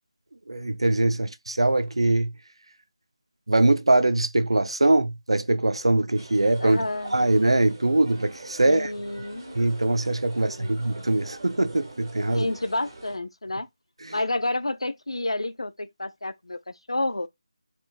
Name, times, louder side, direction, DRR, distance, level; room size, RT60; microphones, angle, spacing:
voice 1, 0.5-2.3 3.5-6.8 7.1-8.9 9.5-12.5 14.0-14.2, right 2 dB, 80° right, 0.5 m, -22 dB
sound 1, 6.1-13.2, right 2 dB, 50° right, 1.7 m, -45 dB
voice 2, 6.6-7.2 8.6-9.6 10.4-10.7 12.3-13.7 14.1-16.6 16.9-17.3, left 2 dB, 85° left, 0.5 m, -30 dB
4.4 x 2.0 x 2.3 m
figure-of-eight pair, 165°, 3 cm